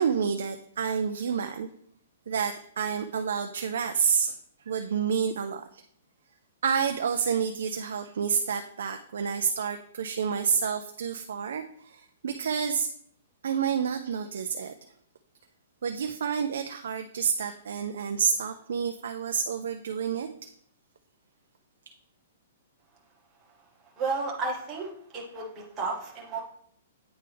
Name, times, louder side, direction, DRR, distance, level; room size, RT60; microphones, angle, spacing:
voice 1, 0.0-1.7 2.3-4.4 4.7-5.8 6.6-12.9 13.4-14.7 15.8-20.3, right 6 dB, 70° right, 6 dB, 0.4 m, -29 dB
voice 2, 24.0-26.4, right 3 dB, 15° right, -3 dB, 0.9 m, -32 dB
8.8 x 3.4 x 3.4 m, 0.66 s
hypercardioid pair, 175°, 0 cm